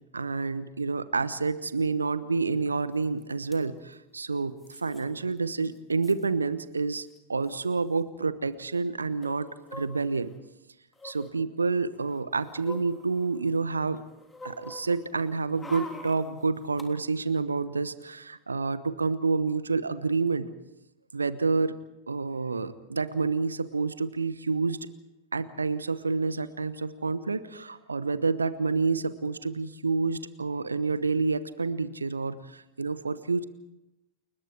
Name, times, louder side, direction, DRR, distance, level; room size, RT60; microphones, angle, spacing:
voice 1, 0.1-10.3 11.0-14.0 14.4-20.5 21.1-21.8 22.1-24.9 25.3-33.4, right 4 dB, 75° right, 15 dB, 1.0 m, -28 dB
sound 1, 3.0-3.1 3.3-3.6 4.6-5.0 5.4-5.5 5.7-6.3 7.1-7.2 7.4-7.6 9.2-10.4 10.9-11.3 11.9-13.6 13.9-16.9 17.2-17.3, left 2 dB, 10° left, 3.3 m, -45 dB
29.5 x 21.5 x 4.8 m, 0.94 s
figure-of-eight pair, 90°, 0 cm